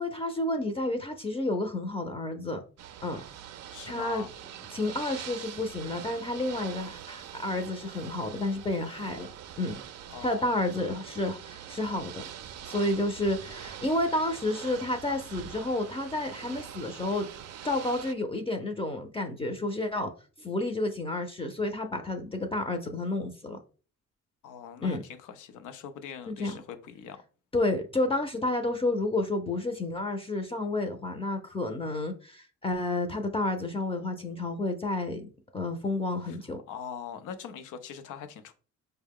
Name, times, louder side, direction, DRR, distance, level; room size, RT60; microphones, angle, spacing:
voice 1, 0.0-2.6 3.0-3.2 3.9-4.3 4.7-9.3 9.6-9.8 10.2-12.2 12.7-17.3 17.6-20.1 20.4-23.6 24.8-25.0 26.3-26.6 27.5-36.6, left 2 dB, 20° left, 0.6 m, -30 dB
Ocean / Boat Water vehicle, 2.8-18.1, right 10 dB, 60° right, 0.4 m, -44 dB
voice 2, 3.7-4.3 10.1-10.5 24.4-27.2 36.3-36.4 36.7-38.5, left 8 dB, 85° left, 0.6 m, -42 dB
4.4 x 2.2 x 3.5 m
cardioid pair, 90°, 30 cm